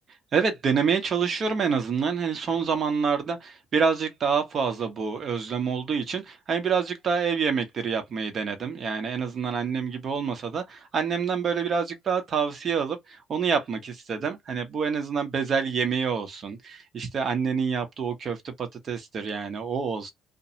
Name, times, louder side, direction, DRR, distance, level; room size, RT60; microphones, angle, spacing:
voice 1, 0.3-20.1, right 6 dB, 45° right, 0.9 m, -27 dB
2.2 x 2.2 x 2.9 m
hypercardioid pair, 55°, 0 cm